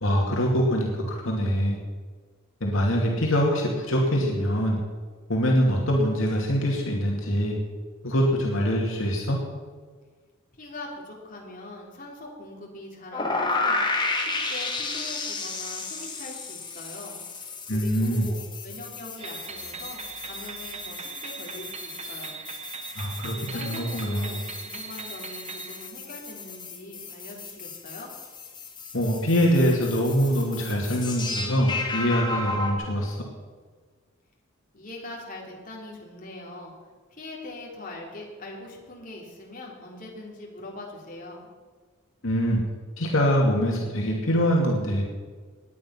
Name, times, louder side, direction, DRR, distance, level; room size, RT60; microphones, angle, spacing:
voice 1, 0.0-1.8 2.6-4.8 5.3-7.6 8.0-9.4 17.7-18.3 23.0-24.4 28.9-33.2 42.2-42.6 43.0-45.0, equal, 70° left, -2 dB, 2.6 m, -24 dB
voice 2, 10.6-22.4 23.3-28.1 34.7-36.7 37.1-41.5, left 2 dB, 40° left, -2 dB, 3.6 m, -42 dB
sound 1, 13.1-32.7, left 3 dB, 20° left, 2.2 m, -33 dB
sound 2, 19.2-25.9, right 5 dB, 30° right, 1.1 m, -40 dB
19.5 x 9.6 x 5.9 m, 1.5 s
head